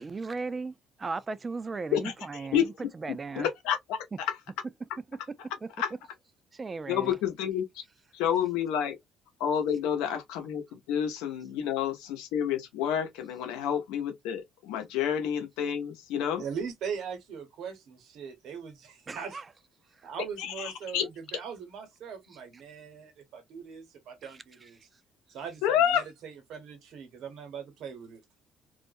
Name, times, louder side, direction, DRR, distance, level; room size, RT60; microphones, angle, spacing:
voice 1, 0.0-2.6 3.0-3.5 6.6-7.2 19.1-19.5, right 4 dB, 30° right, 0.4 m, -36 dB
voice 2, 1.9-2.7 3.3-4.4 5.8-5.9 6.9-7.8 8.1-9.0 9.4-16.4 20.4-21.0 25.6-26.0, left 9 dB, 85° left, 0.7 m, -29 dB
voice 3, 16.4-19.4 20.0-24.8 25.3-28.2, right 6 dB, 75° right, 1.0 m, -40 dB
2.4 x 2.1 x 2.5 m
supercardioid pair, 75°, 0 cm